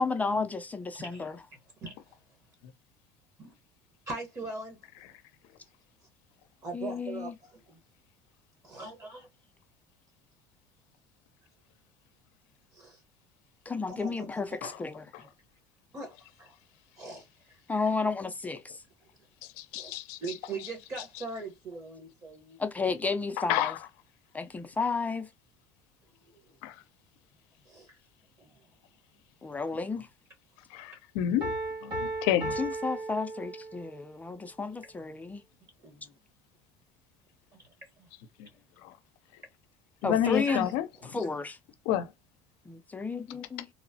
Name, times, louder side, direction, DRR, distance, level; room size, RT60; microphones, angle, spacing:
voice 1, 0.0-1.4 6.7-7.3 13.7-15.1 17.7-18.8 22.6-23.8 24.3-25.3 29.4-30.1 32.5-35.4 40.0-40.7 41.1-41.6 42.7-43.7, left 4 dB, 15° left, 0.4 m, -32 dB
voice 2, 1.0-1.3 1.8-2.2 3.4-3.5 4.1-4.8 6.6-7.6 8.6-9.3 12.7-13.0 13.9-14.7 15.2-15.3 15.9-16.6 17.0-17.9 19.7-22.6 26.2-26.6 27.6-28.0 28.4-28.7 32.0-32.2 35.8-36.2 37.5-38.1 40.2-40.7 41.0-41.1, right 3 dB, 30° right, 1.0 m, -42 dB
voice 3, 19.6-20.2 23.5-23.7 26.6-26.7 30.7-31.5 31.8-32.5 40.0-40.9 41.9-42.1, left 11 dB, 80° left, 0.5 m, -28 dB
Piano, 31.4-34.0, right 2 dB, 50° right, 1.6 m, -35 dB
3.0 x 2.0 x 2.6 m
supercardioid pair, 115°, 10 cm